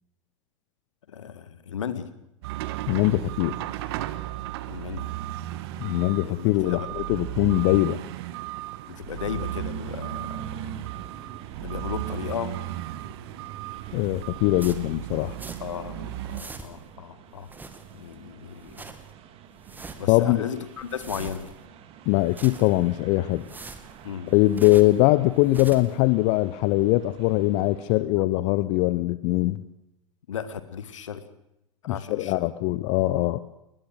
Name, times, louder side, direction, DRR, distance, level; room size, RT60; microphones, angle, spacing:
voice 1, 1.1-2.1 4.7-5.1 6.2-7.2 8.9-10.7 11.6-12.7 15.6-17.5 17.9-18.9 20.0-21.5 24.0-24.7 30.3-31.2 31.8-32.4, left 8 dB, 65° left, 12 dB, 1.8 m, -35 dB
sound 1, 2.4-16.4, right 14 dB, 50° right, 1.3 m, -35 dB
voice 2, 2.9-3.5 5.8-8.0 13.9-15.4 20.1-20.4 22.1-23.4 24.3-29.6 31.9-33.4, left 18 dB, 40° left, 16 dB, 0.8 m, -22 dB
sound 2, 9.4-28.0, right 9 dB, 35° right, 2.3 m, -47 dB
sound 3, 14.6-15.9 16.1-17.0 17.4-18.2 18.5-19.1 19.5-20.2 20.6-21.7 22.1-22.9 23.3-25.0 25.4-26.0, right 3 dB, 10° right, 2.0 m, -44 dB
21.0 x 20.0 x 6.6 m, 0.86 s
figure-of-eight pair, 90°, 17 cm